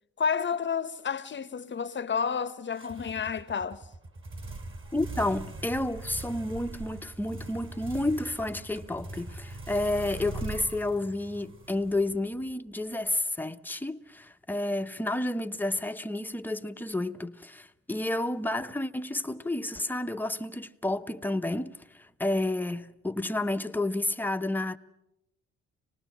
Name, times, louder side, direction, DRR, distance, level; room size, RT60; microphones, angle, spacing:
voice 1, 0.2-3.8, left 6 dB, 40° left, 0.9 m, -30 dB
sound 1, 2.7-12.5, right 2 dB, 40° right, 3.8 m, -41 dB
voice 2, 4.9-24.8, left 2 dB, 5° left, 0.9 m, -31 dB
25.5 x 19.5 x 7.2 m
cardioid pair, 90°, 30 cm